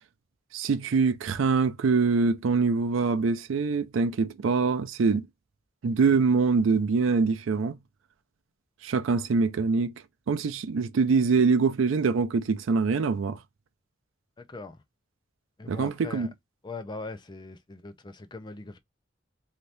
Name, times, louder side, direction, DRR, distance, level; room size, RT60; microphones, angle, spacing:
voice 1, 0.5-5.2 5.8-7.8 8.8-9.9 10.3-13.4 15.7-16.3, right 4 dB, 85° right, 0.4 m, -24 dB
voice 2, 14.4-14.8 15.6-16.3 16.6-18.8, left 3 dB, 25° left, 0.5 m, -40 dB
2.8 x 2.6 x 3.2 m
head